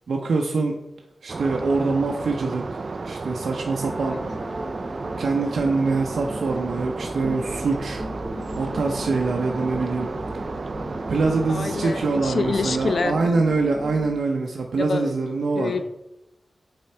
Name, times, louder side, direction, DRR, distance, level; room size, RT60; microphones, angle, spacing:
voice 1, 0.1-0.8 1.2-4.2 5.2-8.0 8.5-10.1 11.1-15.7, right 3 dB, 85° right, 1 dB, 0.7 m, -24 dB
sound 1, 1.3-13.0, right 3 dB, 45° right, 0.3 m, -33 dB
sound 2, 3.8-14.2, equal, 10° left, 0.9 m, -36 dB
voice 2, 11.5-13.2 14.8-15.2 15.6-15.8, left 4 dB, 60° left, 10 dB, 0.4 m, -26 dB
8.7 x 3.8 x 4.4 m, 0.89 s
wide cardioid pair, 140°, 0 cm